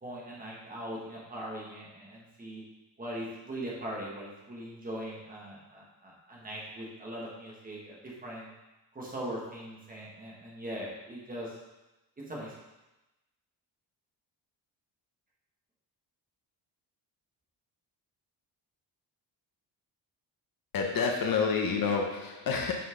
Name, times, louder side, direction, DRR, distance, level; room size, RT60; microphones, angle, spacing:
voice 1, 0.0-2.6 3.0-8.5 8.9-11.6 12.3-12.6, right 1 dB, 20° right, -5 dB, 1.4 m, -40 dB
voice 2, 20.7-22.7, left 5 dB, 50° left, 2 dB, 0.7 m, -28 dB
5.7 x 5.6 x 3.8 m, 1.0 s
wide cardioid pair, 180°, 44 cm